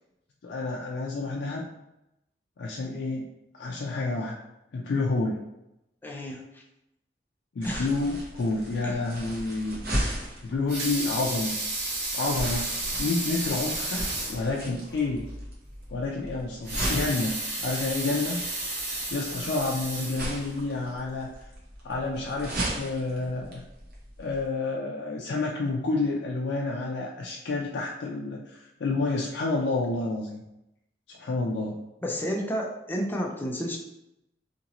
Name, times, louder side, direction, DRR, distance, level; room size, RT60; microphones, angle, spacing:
voice 1, 0.4-1.7 2.6-3.3 3.5-4.4 4.7-5.4 7.6-9.8 10.4-11.5 12.1-15.3 15.9-18.4 19.1-21.3 21.8-23.6 24.2-30.4 31.1-31.8, left 3 dB, 70° left, -3 dB, 0.4 m, -29 dB
voice 2, 6.0-6.6 7.6-7.9 8.8-9.0 13.5-13.6 32.0-33.8, equal, 10° left, 0 dB, 0.4 m, -31 dB
sound 1, 7.6-24.4, right 1 dB, 55° right, 0.9 m, -37 dB
Water tap faucet / Sink (filling or washing) / Liquid, 10.5-14.4 14.9-15.0 15.3-15.4 16.5-20.7 21.2-21.3, right 2 dB, 80° right, 1.3 m, -32 dB
2.8 x 2.6 x 2.8 m, 0.88 s
head